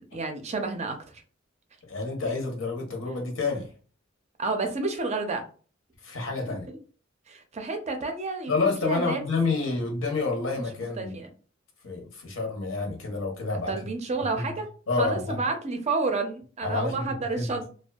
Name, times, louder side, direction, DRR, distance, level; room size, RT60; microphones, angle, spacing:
voice 1, 0.1-1.0 4.4-5.4 6.4-6.5 7.3-9.2 11.0-11.3 13.7-14.7 15.0-17.7, right 3 dB, 35° right, 0.4 m, -30 dB
voice 2, 1.9-3.7 6.0-6.7 8.5-11.2 11.8-13.8 14.4-14.5 14.9-15.4 16.6-17.1 17.3-17.5, left 3 dB, 75° left, 0.8 m, -28 dB
2.5 x 2.2 x 2.2 m
head